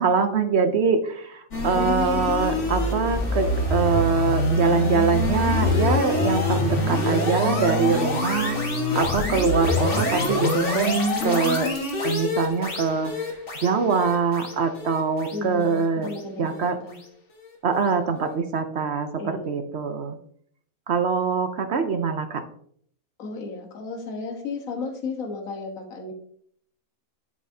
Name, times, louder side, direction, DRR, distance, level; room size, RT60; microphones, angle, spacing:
voice 1, 0.0-8.6 8.9-11.7 12.0-13.1 13.6-16.1 16.4-16.8 17.6-20.2 20.9-22.4, right 5 dB, 55° right, 7 dB, 0.9 m, -23 dB
sound 1, 1.5-16.7, left 2 dB, 55° left, 1.9 m, -25 dB
voice 2, 1.8-2.4 15.3-17.0 19.2-19.6 23.2-26.1, left 4 dB, 75° left, 2 dB, 1.6 m, -33 dB
9.8 x 7.4 x 2.7 m, 0.64 s
omnidirectional pair, 1.5 m